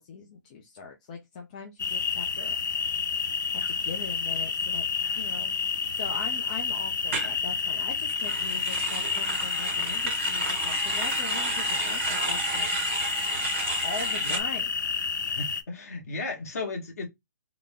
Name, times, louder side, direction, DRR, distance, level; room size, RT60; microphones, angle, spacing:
voice 1, 0.0-2.6 3.5-4.8 5.2-12.8 13.8-14.7, left 5 dB, 20° left, 0.5 m, -41 dB
sound 1, 1.8-15.6, left 6 dB, 75° left, 0.7 m, -29 dB
sound 2, 7.1-7.3 8.1-14.4, right 5 dB, 40° right, 0.9 m, -33 dB
voice 2, 15.3-17.1, left 3 dB, 50° left, 1.6 m, -35 dB
3.8 x 2.1 x 3.4 m
hypercardioid pair, 170°, 10 cm